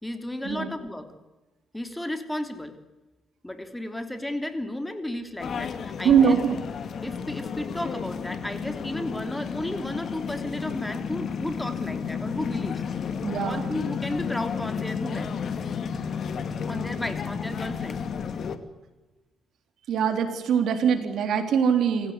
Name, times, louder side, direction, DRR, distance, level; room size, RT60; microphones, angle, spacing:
voice 1, 0.0-1.1 1.7-2.8 3.4-6.4 7.0-12.8 13.4-15.3 16.7-18.0, left 1 dB, 10° left, 8 dB, 3.3 m, -33 dB
sound 1, 5.4-18.6, left 6 dB, 55° left, 2.3 m, -32 dB
voice 2, 6.0-6.5 13.2-13.7 19.9-22.1, right 7 dB, 70° right, 7 dB, 3.6 m, -22 dB
28.0 x 16.5 x 9.6 m, 1.1 s
cardioid pair, 90°, 0 cm